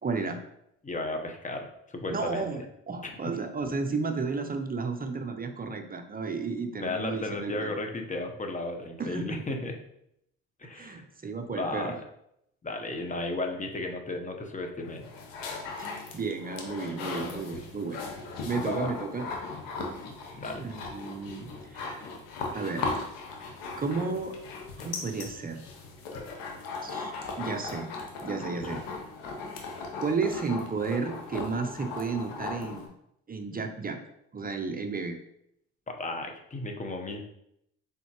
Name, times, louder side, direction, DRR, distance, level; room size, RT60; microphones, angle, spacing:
voice 1, 0.0-0.4 2.1-7.7 9.0-9.4 10.7-12.0 15.4-18.1 18.4-19.3 20.6-22.1 22.5-23.0 23.8-24.4 24.8-25.6 26.8-27.9 28.2-28.9 30.0-32.9 33.3-34.0 34.3-35.2, right 4 dB, 25° right, 6 dB, 0.6 m, -33 dB
voice 2, 0.8-2.5 6.8-9.7 10.6-11.0 11.5-11.9 12.6-15.1 18.6-19.0 20.4-20.6 28.6-28.7 35.9-37.2, left 2 dB, 25° left, 3 dB, 0.9 m, -34 dB
sound 1, 14.8-32.9, left 3 dB, 85° left, 0.9 m, -38 dB
4.2 x 3.6 x 2.9 m, 0.76 s
supercardioid pair, 65°, 34 cm